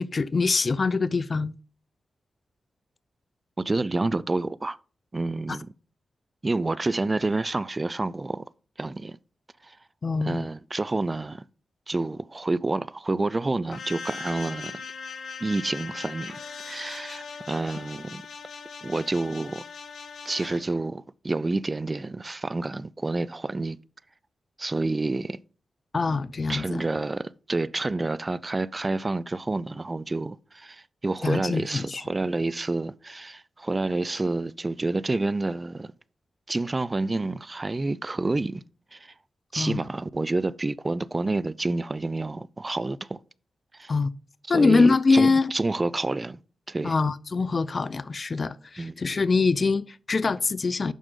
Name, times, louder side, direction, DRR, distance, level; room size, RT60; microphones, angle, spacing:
voice 1, 0.0-1.5 5.5-5.6 10.0-10.5 25.9-26.8 31.2-32.0 39.6-39.8 43.9-44.1 44.5-45.5 46.8-50.9, left 4 dB, 50° left, 0.5 m, -24 dB
voice 2, 3.6-4.8 5.1-5.7 6.4-8.5 8.8-9.2 9.6-9.8 10.2-11.4 11.9-14.8 15.4-16.4 16.6-18.2 18.8-19.6 20.3-23.8 24.6-25.4 26.5-35.9 36.5-38.6 38.9-39.1 39.5-43.2 43.7-43.9 44.5-46.4 46.7-46.9 48.8-49.0, right 2 dB, 35° right, 0.4 m, -28 dB
sound 1, 13.7-20.6, left 5 dB, 70° left, 1.2 m, -39 dB
9.1 x 6.2 x 3.8 m
cardioid pair, 45°, 0 cm